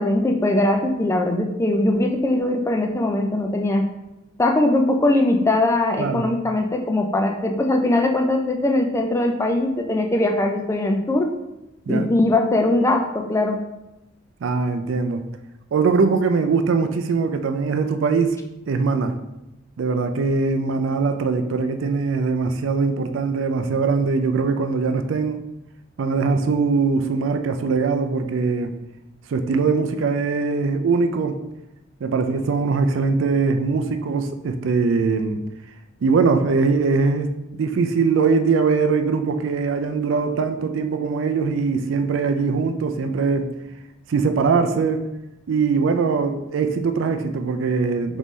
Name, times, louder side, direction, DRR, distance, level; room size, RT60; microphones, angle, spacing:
voice 1, 0.0-3.9 4.4-11.3 11.9-13.6, left 2 dB, 15° left, 3 dB, 0.3 m, -20 dB
voice 2, 14.4-15.2 15.7-18.4 18.7-19.1 19.8-25.4 26.0-28.7 29.3-31.4 32.0-35.4 36.0-43.5 44.1-45.1 45.5-48.2, right 4 dB, 70° right, 7 dB, 0.4 m, -21 dB
3.9 x 3.7 x 3.1 m, 0.93 s
head